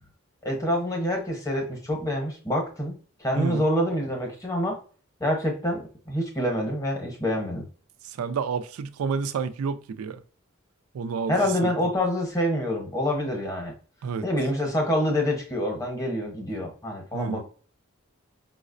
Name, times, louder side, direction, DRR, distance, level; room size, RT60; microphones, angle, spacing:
voice 1, 0.4-2.9 3.2-4.8 5.2-5.8 6.1-7.6 11.3-13.7 14.2-17.4, left 1 dB, 15° left, 0.8 m, -26 dB
voice 2, 8.0-10.2 10.9-11.7 14.0-14.3 17.1-17.4, right 5 dB, 80° right, 0.3 m, -29 dB
4.8 x 2.1 x 2.5 m
head